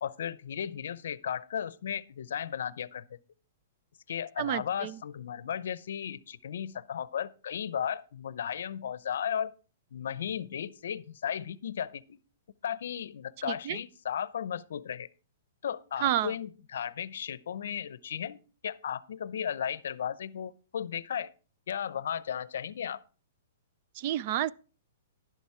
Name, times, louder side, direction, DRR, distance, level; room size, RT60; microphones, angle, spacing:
voice 1, 0.0-3.0 4.1-9.5 9.9-12.2 12.6-15.1 15.6-21.3 21.7-23.0, left 8 dB, 70° left, 0.6 m, -35 dB
voice 2, 4.4-5.0 13.4-13.8 16.0-16.3 24.0-24.5, right 12 dB, 35° right, 0.4 m, -30 dB
11.5 x 7.2 x 4.8 m
hypercardioid pair, 165°, 0 cm